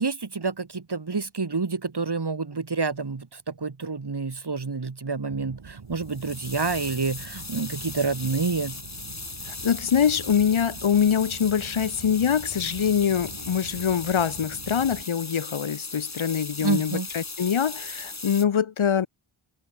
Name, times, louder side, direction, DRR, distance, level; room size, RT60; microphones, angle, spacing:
voice 1, 0.0-8.8 16.6-17.1, right 4 dB, 55° right, 3.1 m, -28 dB
sound 1, 5.3-15.0, right 5 dB, 80° right, 3.3 m, -44 dB
sound 2, 6.0-18.5, left 3 dB, 35° left, 2.3 m, -38 dB
voice 2, 9.5-19.1, left 8 dB, 75° left, 1.1 m, -24 dB
wide cardioid pair, 55°, 48 cm